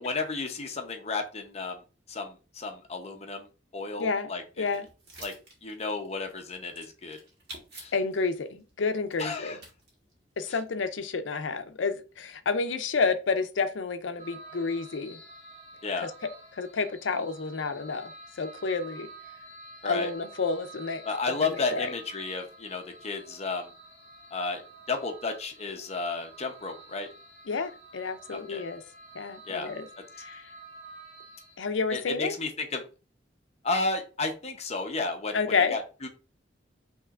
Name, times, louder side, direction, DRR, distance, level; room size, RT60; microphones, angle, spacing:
voice 1, 0.0-1.8 2.1-3.5 3.7-4.8 5.2-5.3 5.6-7.2 7.7-7.9 9.2-9.6 10.5-10.6 15.8-16.1 19.8-20.1 21.0-23.7 24.3-24.6 24.9-27.1 28.3-28.6 29.4-29.7 31.9-32.8 33.6-36.1, left 3 dB, 35° left, 0.7 m, -32 dB
voice 2, 4.0-4.3 4.6-4.9 7.9-9.6 10.4-15.2 16.0-16.1 16.6-18.1 18.4-19.1 19.8-21.0 21.5-21.9 27.5-28.8 29.1-29.9 30.2-30.4 31.6-32.3 35.3-35.8, left 4 dB, 80° left, 0.6 m, -30 dB
sound 1, 4.5-10.7, right 3 dB, 60° right, 1.6 m, -49 dB
sound 2, 14.2-31.6, right 2 dB, 40° right, 1.4 m, -49 dB
5.5 x 3.0 x 2.4 m
head